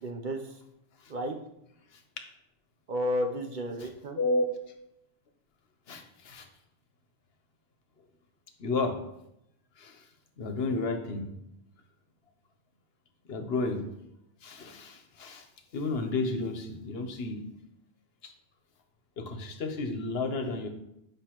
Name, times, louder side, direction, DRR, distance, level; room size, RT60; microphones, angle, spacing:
voice 1, 0.0-0.5 1.1-1.4 2.9-4.2, equal, 55° right, 3 dB, 0.8 m, -32 dB
voice 2, 4.2-4.5 5.9-6.5 8.6-9.0 9.8-10.0 10.4-11.2 13.3-13.8 14.4-15.5 15.7-17.4 18.2-18.3 19.2-20.7, left 3 dB, 70° left, 6 dB, 1.0 m, -32 dB
8.2 x 5.2 x 3.0 m, 0.81 s
omnidirectional pair, 1.1 m